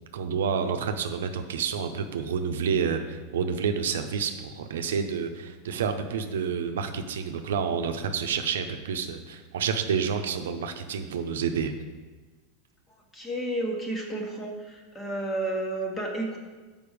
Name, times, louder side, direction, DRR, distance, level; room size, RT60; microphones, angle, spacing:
voice 1, 0.0-11.7, right 6 dB, 90° right, 7 dB, 0.6 m, -29 dB
voice 2, 13.1-16.4, right 1 dB, 15° left, 1 dB, 1.3 m, -31 dB
6.8 x 5.3 x 5.0 m, 1.3 s
supercardioid pair, 130°, 0 cm